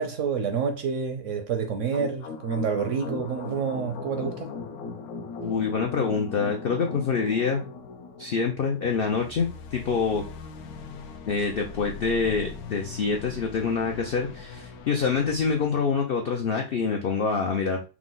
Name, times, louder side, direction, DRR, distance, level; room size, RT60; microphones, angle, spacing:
voice 1, 0.0-4.5, right 6 dB, 70° right, 0.8 m, -28 dB
sound 1, 1.9-15.7, left 5 dB, 70° left, 1.1 m, -39 dB
voice 2, 5.4-7.6 8.2-10.2 11.3-17.8, left 5 dB, 85° left, 0.5 m, -26 dB
4.7 x 2.0 x 3.8 m
omnidirectional pair, 1.7 m